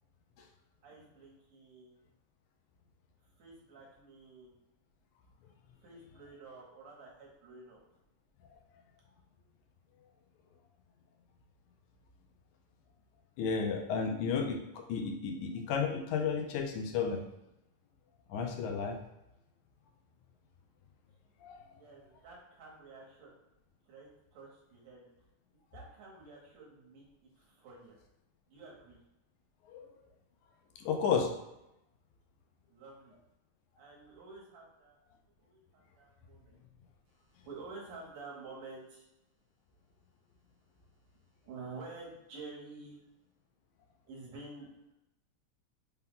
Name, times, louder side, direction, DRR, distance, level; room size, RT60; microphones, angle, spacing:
voice 1, 0.8-2.0 3.4-4.5 5.8-7.8 21.7-23.3 23.9-25.1 25.7-27.1 27.4-28.0 28.5-29.0 32.7-33.1 33.8-35.0 35.4-36.6 37.5-39.1 41.4-43.0 44.1-44.7, right 3 dB, 70° right, -3 dB, 2.2 m, -50 dB
voice 2, 13.4-17.2 18.3-19.0 21.4-21.6 29.7-29.8 30.8-31.3, left 6 dB, 90° left, 4 dB, 2.0 m, -32 dB
5.6 x 2.3 x 3.6 m, 0.88 s
omnidirectional pair, 3.3 m